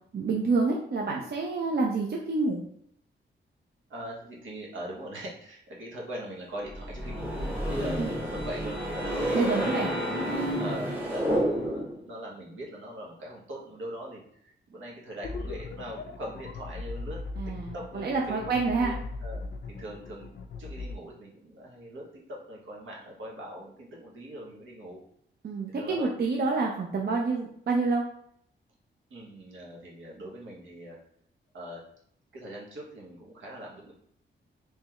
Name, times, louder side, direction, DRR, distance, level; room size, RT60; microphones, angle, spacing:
voice 1, 0.1-2.6 8.0-8.1 9.3-9.9 17.4-19.0 25.4-28.0, right 3 dB, 55° right, -1 dB, 0.6 m, -28 dB
voice 2, 3.9-7.4 7.7-9.6 10.6-17.2 17.7-18.5 18.8-20.3 20.6-25.0 25.7-26.1 29.1-31.0 31.5-31.8 32.3-33.9, right 1 dB, 85° right, -2 dB, 1.3 m, -41 dB
sound 1, 6.7-12.0, equal, 10° right, 1.3 m, -30 dB
sound 2, 15.2-21.0, left 3 dB, 65° left, 0.4 m, -38 dB
3.4 x 3.2 x 3.0 m, 0.68 s
wide cardioid pair, 120°, 20 cm